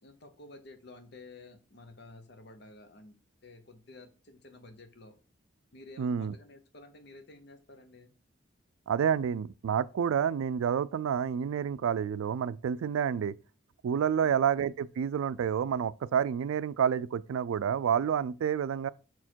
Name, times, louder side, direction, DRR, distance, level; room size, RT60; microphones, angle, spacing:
voice 1, 0.0-3.1 3.4-5.1 5.7-8.1 14.1-14.4, left 2 dB, 55° left, 0.8 m, -52 dB
voice 2, 6.0-6.3 8.9-13.3 13.8-18.9, right 8 dB, 85° right, 0.3 m, -29 dB
5.9 x 4.3 x 4.5 m
head